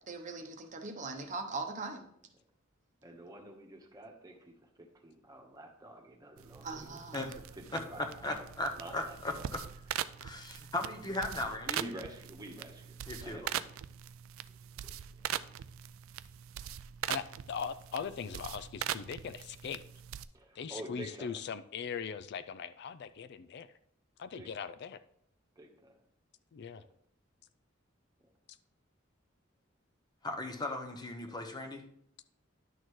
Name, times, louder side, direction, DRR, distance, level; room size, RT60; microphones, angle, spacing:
voice 1, 0.1-2.0 6.6-7.2, right 3 dB, 40° right, 5 dB, 0.8 m, -40 dB
voice 2, 3.0-8.5 8.8-9.5 11.8-13.5 14.8-14.9 20.3-21.3 24.3-24.7 25.6-26.0 26.7-26.9 31.3-31.4, right 1 dB, 20° right, 2 dB, 1.2 m, -48 dB
sound 1, 6.4-20.3, right 10 dB, 90° right, 0.4 m, -42 dB
voice 3, 8.2-9.6 10.2-11.8 13.1-13.5 30.2-31.8, left 2 dB, 20° left, 4 dB, 0.8 m, -37 dB
voice 4, 17.1-19.8 20.6-23.7 24.2-25.0 26.5-26.8, left 6 dB, 55° left, 12 dB, 0.4 m, -40 dB
10.5 x 6.4 x 3.2 m, 0.70 s
head